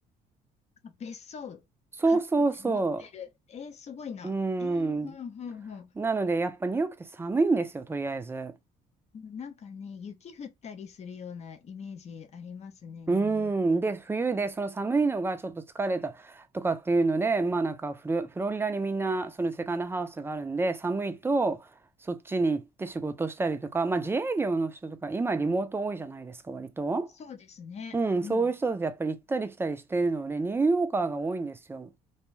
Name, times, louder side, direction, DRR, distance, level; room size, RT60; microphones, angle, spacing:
voice 1, 0.8-1.6 2.0-2.2 2.5-5.9 9.1-13.9 27.1-28.5, left 6 dB, 40° left, 0.6 m, -42 dB
voice 2, 2.0-3.0 4.2-5.1 6.0-8.5 13.1-21.7 22.1-27.1 27.9-31.9, right 3 dB, 15° right, 0.4 m, -28 dB
2.6 x 2.2 x 3.1 m
cardioid pair, 110°, 17 cm